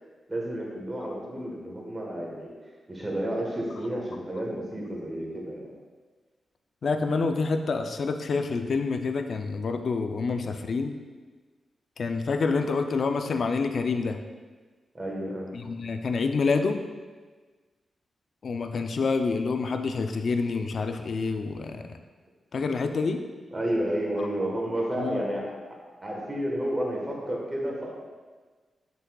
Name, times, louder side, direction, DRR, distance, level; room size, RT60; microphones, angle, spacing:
voice 1, 0.3-2.5 2.9-5.7 14.9-15.6 23.5-25.4 26.0-27.9, right 1 dB, 20° right, -2 dB, 1.3 m, -31 dB
voice 2, 6.8-11.0 12.0-14.2 15.5-16.8 18.4-22.0 22.5-23.2 24.2-24.3 25.0-25.2, left 4 dB, 50° left, 6 dB, 0.4 m, -27 dB
8.1 x 6.0 x 2.3 m, 1.4 s
wide cardioid pair, 155°, 0 cm